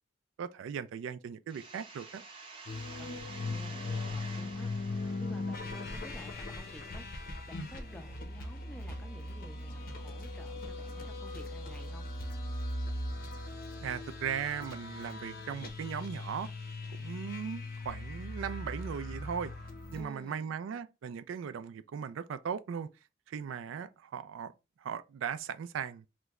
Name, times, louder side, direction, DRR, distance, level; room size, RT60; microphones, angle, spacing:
voice 1, 0.4-2.2 13.8-16.5 17.0-19.5 19.9-22.9 23.3-24.5 24.8-26.0, right 7 dB, 90° right, 0.3 m, -38 dB
sound 1, 1.5-7.0, right 3 dB, 30° right, 0.7 m, -49 dB
sound 2, 2.7-20.0, left 2 dB, 50° left, 0.6 m, -39 dB
voice 2, 2.9-12.1 19.9-20.6, equal, 5° left, 0.4 m, -52 dB
2.9 x 2.1 x 3.5 m
head